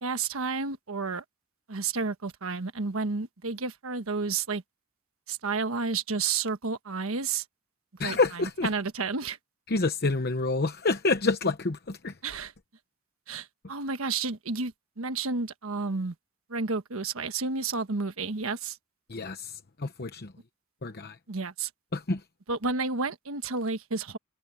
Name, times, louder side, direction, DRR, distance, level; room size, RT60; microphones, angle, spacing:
voice 1, 0.0-1.2 1.7-4.6 5.3-7.4 8.0-9.4 12.2-12.5 13.3-16.1 16.5-18.8 21.3-21.7 22.5-24.2, right 4 dB, 85° right, 1.3 m, -31 dB
voice 2, 8.0-8.7 9.7-12.1 19.1-20.3 20.8-21.2 21.9-22.2, left 3 dB, 50° left, 0.9 m, -28 dB
head